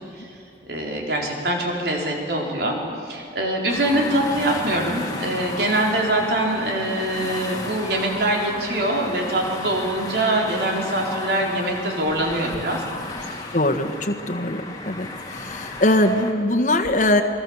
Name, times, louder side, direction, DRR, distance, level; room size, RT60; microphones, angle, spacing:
voice 1, 0.7-12.8 13.2-13.4, right 1 dB, 65° right, 0 dB, 4.2 m, -24 dB
sound 1, 3.7-16.3, left 2 dB, 20° left, 2.3 m, -34 dB
voice 2, 13.5-15.1 15.3-17.2, left 1 dB, 45° left, 4 dB, 1.6 m, -21 dB
28.0 x 22.5 x 7.3 m, 2.5 s
head